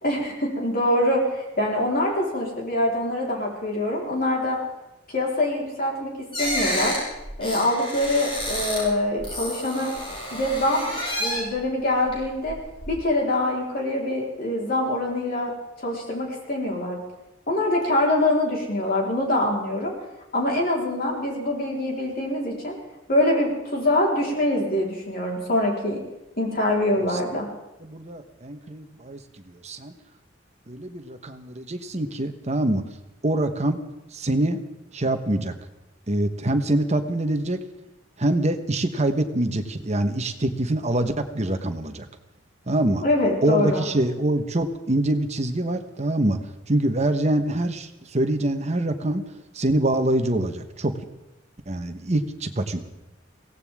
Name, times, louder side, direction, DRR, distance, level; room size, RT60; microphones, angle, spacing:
voice 1, 0.0-4.6 5.1-6.1 6.4-7.0 7.4-9.9 10.3-10.9 11.2-12.6 12.9-15.5 15.8-17.0 17.5-19.9 20.3-22.8 23.1-26.0 26.4-27.5 43.0-43.8, left 1 dB, 50° left, -2 dB, 4.1 m, -24 dB
sound 1, 6.3-8.9 9.2-11.6 12.1-12.9, left 1 dB, 30° left, 6.8 m, -30 dB
voice 2, 27.8-29.9 30.7-32.8 33.2-33.8 34.1-34.6 34.9-35.6 36.1-37.6 38.2-42.1 42.7-43.0 43.4-46.4 46.7-49.2 49.5-51.0 51.7-52.8, right 1 dB, 35° right, 7 dB, 1.2 m, -25 dB
23.0 x 17.0 x 3.6 m, 0.94 s
head